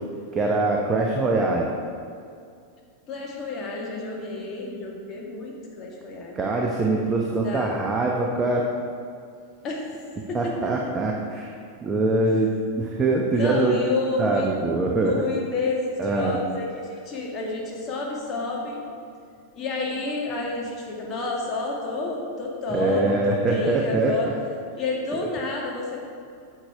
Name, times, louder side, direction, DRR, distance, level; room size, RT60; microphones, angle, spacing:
voice 1, 0.3-1.7 6.4-8.7 10.3-13.8 14.2-15.1 16.0-16.4 22.7-24.1, right 2 dB, 20° right, -1 dB, 0.8 m, -23 dB
voice 2, 3.1-6.4 7.3-7.8 9.6-10.4 10.9-11.0 13.3-14.5 15.0-18.8 19.5-24.3 24.7-26.1, left 3 dB, 30° left, -2 dB, 1.8 m, -30 dB
8.9 x 6.7 x 4.7 m, 2.3 s
figure-of-eight pair, 90°, 0 cm